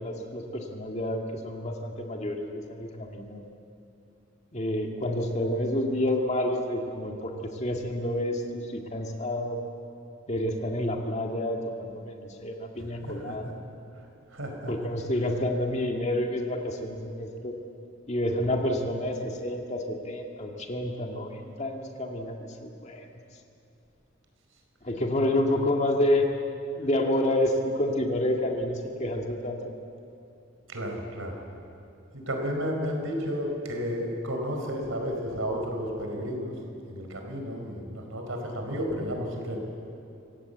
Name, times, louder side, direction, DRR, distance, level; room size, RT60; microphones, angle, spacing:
voice 1, 0.0-3.4 4.5-9.6 10.3-13.5 14.7-17.5 18.1-23.1 24.8-26.3 26.7-29.6, left 1 dB, 35° left, 2 dB, 2.1 m, -29 dB
voice 2, 13.0-13.3 14.3-14.7 30.7-31.4 32.1-36.5 36.9-39.6, equal, 90° right, 3 dB, 4.6 m, -32 dB
26.0 x 17.0 x 8.1 m, 2.7 s
head